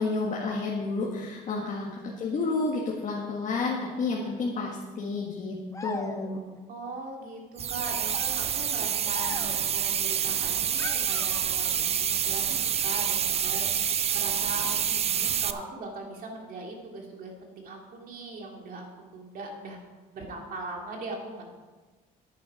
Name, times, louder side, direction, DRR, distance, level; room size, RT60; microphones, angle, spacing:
voice 1, 0.0-6.4, left 3 dB, 45° left, -3 dB, 1.7 m, -30 dB
sound 1, 5.7-6.6 7.8-9.8 10.8-11.9, left 3 dB, 20° left, 0.8 m, -41 dB
voice 2, 6.7-18.8 19.1-19.8 20.1-21.4, right 2 dB, 55° right, 0 dB, 2.8 m, -40 dB
sound 2, 7.6-15.5, right 8 dB, 40° right, 0.5 m, -27 dB
10.0 x 9.8 x 5.0 m, 1.3 s
cardioid pair, 110°, 17 cm